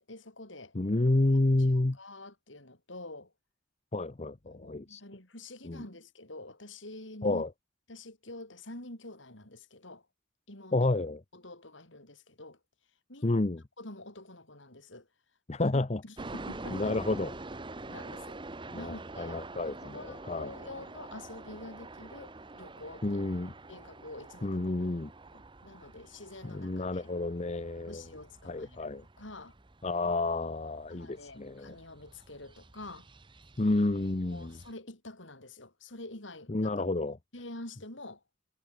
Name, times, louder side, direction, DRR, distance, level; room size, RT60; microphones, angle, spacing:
voice 1, 0.0-0.7 1.7-3.3 4.5-7.4 7.9-10.1 10.5-10.9 11.3-12.6 13.1-13.4 13.8-15.1 15.7-17.0 17.9-18.4 18.7-23.2 23.7-24.9 25.3-27.1 27.9-29.5 30.9-33.1 34.2-36.9 37.3-38.2, left 2 dB, 75° left, 6.4 m, -47 dB
voice 2, 0.7-2.0 3.9-5.0 5.6-5.8 7.2-7.5 10.7-11.2 13.2-13.6 15.5-16.0 16.7-17.3 18.7-20.0 20.3-20.5 23.0-23.5 24.4-25.1 26.4-28.0 28.4-29.0 29.8-31.7 33.6-34.5 36.5-37.2, left 2 dB, 35° left, 0.7 m, -30 dB
sound 1, 16.2-34.7, right 2 dB, 25° right, 1.0 m, -46 dB
head